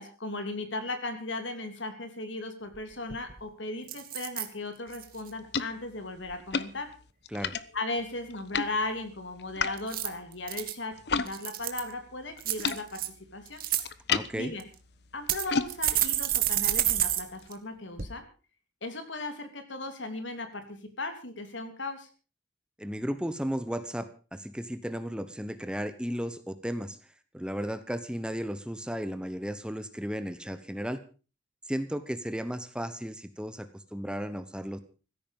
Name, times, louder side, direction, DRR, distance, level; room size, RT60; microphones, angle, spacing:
voice 1, 0.0-6.9 7.7-13.0 13.3-13.6 14.3-14.7 15.1-18.3 18.8-22.1, left 2 dB, 80° left, 7 dB, 3.3 m, -37 dB
sound 1, 2.7-2.8 3.1-3.4 3.9-4.5 4.9-5.3 9.8-10.7 11.3-11.9 12.4-13.1 13.5-13.8 14.6-14.7 15.3-17.2 17.5-17.6 18.0-18.1, right 12 dB, 50° right, 1.8 m, -29 dB
sound 2, 4.9-11.3 11.6-17.5, left 5 dB, 60° left, 0.9 m, -36 dB
voice 2, 14.1-14.5 22.8-27.0 27.3-31.0 31.7-34.8, equal, 5° right, 11 dB, 1.0 m, -34 dB
16.0 x 13.5 x 5.4 m, 0.36 s
head